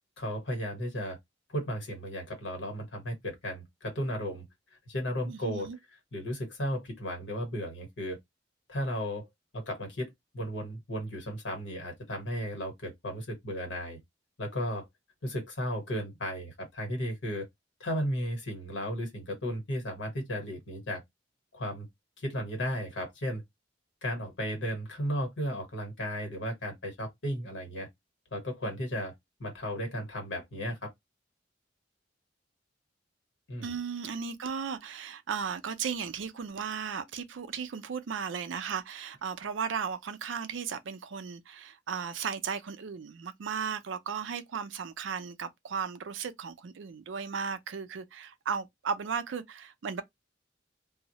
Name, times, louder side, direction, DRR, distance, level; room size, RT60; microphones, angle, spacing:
voice 1, 0.2-1.2 1.5-4.4 4.9-5.7 6.1-8.2 8.7-14.0 14.4-14.9 15.2-17.5 17.8-21.0 21.5-21.9 22.2-23.4 24.0-27.9 28.3-29.1 29.4-30.9 33.5-33.7, equal, 80° left, 1.2 m, -34 dB
voice 2, 5.3-5.8 33.6-50.0, right 6 dB, 90° right, 0.4 m, -35 dB
2.3 x 2.0 x 2.7 m
head